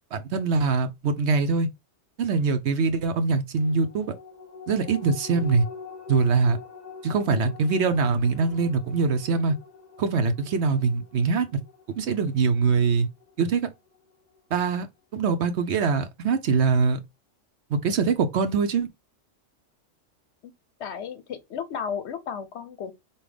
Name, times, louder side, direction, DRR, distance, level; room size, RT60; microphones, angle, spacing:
voice 1, 0.1-1.7 2.2-4.1 4.7-5.7 6.1-6.6 7.0-9.6 10.0-11.5 12.0-13.1 13.4-13.6 14.5-14.9 15.1-17.0 17.7-18.9, right 4 dB, 65° right, 0.9 m, -23 dB
sound 1, 3.6-14.4 14.8-14.9, left 5 dB, 35° left, 0.9 m, -45 dB
voice 2, 20.8-22.9, left 7 dB, 65° left, 0.9 m, -34 dB
5.5 x 2.3 x 3.3 m
omnidirectional pair, 1.4 m